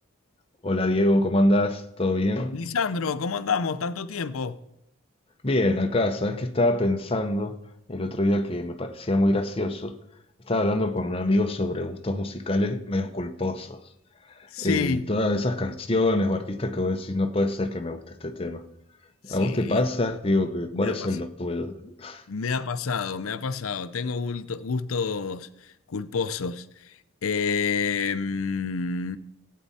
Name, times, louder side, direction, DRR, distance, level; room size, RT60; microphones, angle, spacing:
voice 1, 0.6-2.5 5.4-7.6 7.9-10.0 10.5-13.8 14.6-18.6 19.2-22.2, left 1 dB, 25° left, 0.8 m, -25 dB
voice 2, 2.5-4.6 14.5-15.1 19.3-19.8 20.7-21.1 22.3-29.2, left 5 dB, 85° left, 0.6 m, -29 dB
16.0 x 8.4 x 4.2 m
head